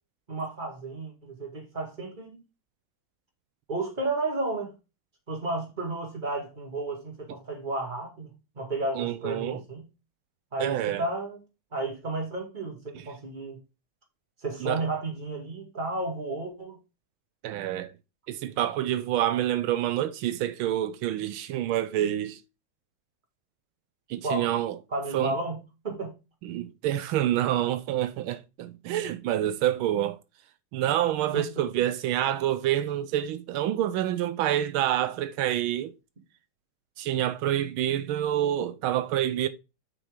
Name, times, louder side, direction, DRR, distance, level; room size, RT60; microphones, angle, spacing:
voice 1, 0.3-2.4 3.7-4.7 5.3-9.9 10.5-11.4 11.7-13.6 14.4-16.8 24.2-24.5 24.9-26.2 31.3-31.7, right 2 dB, 25° right, 2.2 m, -32 dB
voice 2, 9.0-9.6 10.6-11.0 12.9-13.0 14.6-14.8 17.4-17.9 18.3-22.4 24.1-24.8 25.1-25.3 26.4-30.2 30.7-35.9 37.0-39.5, right 12 dB, 85° right, 1.5 m, -27 dB
7.7 x 6.0 x 3.7 m
omnidirectional pair, 2.2 m